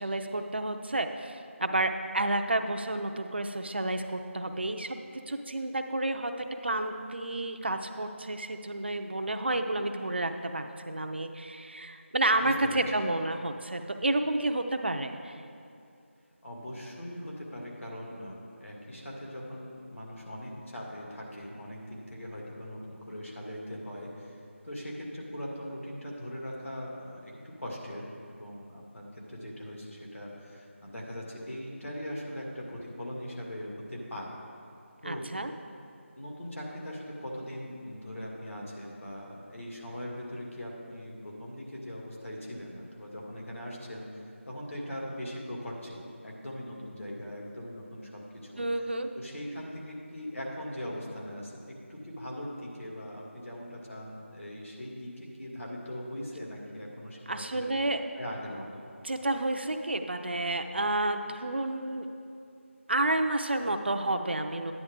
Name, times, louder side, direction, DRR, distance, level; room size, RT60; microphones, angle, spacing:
voice 1, 0.0-5.0 5.3-6.3 6.6-15.3 35.0-35.5 48.6-49.1 57.3-58.0 59.0-62.1 62.9-64.7, right 2 dB, 50° right, 6 dB, 0.6 m, -30 dB
voice 2, 12.4-12.8 16.4-24.4 24.6-34.3 35.0-35.3 36.2-48.6 49.1-57.7 58.2-58.9, equal, 70° left, -2 dB, 2.3 m, -40 dB
10.5 x 9.9 x 3.7 m, 2.5 s
figure-of-eight pair, 170°, 7 cm